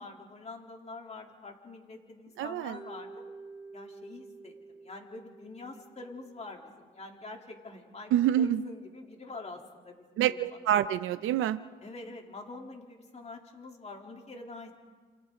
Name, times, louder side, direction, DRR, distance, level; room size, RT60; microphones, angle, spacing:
voice 1, 0.0-3.2 3.7-8.1 8.4-10.4 11.8-14.7, left 3 dB, 35° left, 1 dB, 3.4 m, -45 dB
voice 2, 2.4-2.8 8.1-8.6 10.2-11.6, right 11 dB, 85° right, 12 dB, 0.8 m, -27 dB
Mallet percussion, 2.7-6.8, right 3 dB, 25° right, 3.7 m, -49 dB
28.5 x 28.0 x 3.9 m, 1.4 s
cardioid pair, 90°, 20 cm